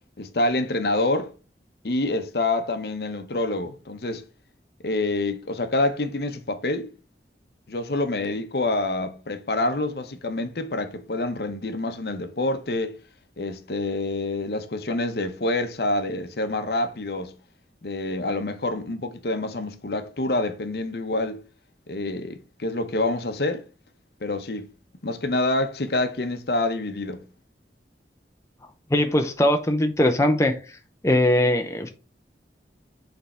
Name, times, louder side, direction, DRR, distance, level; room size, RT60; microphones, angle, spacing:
voice 1, 0.2-1.3 1.8-4.2 4.8-6.9 7.7-13.0 13.4-17.3 17.8-21.4 21.9-23.6 24.2-24.7 25.0-27.2, left 2 dB, 60° left, 0.8 m, -27 dB
voice 2, 28.9-30.6 31.0-31.9, left 1 dB, 15° left, 0.6 m, -20 dB
6.5 x 3.5 x 4.2 m
head